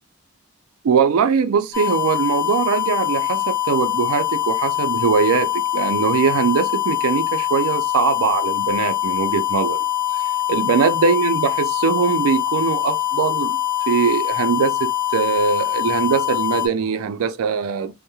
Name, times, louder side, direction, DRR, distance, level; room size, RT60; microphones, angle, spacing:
voice 1, 0.8-9.8 10.5-13.6 13.9-17.9, right 6 dB, 90° right, 0.4 m, -21 dB
sound 1, 1.7-16.7, left 13 dB, 15° left, 0.5 m, -23 dB
2.2 x 2.0 x 2.9 m
head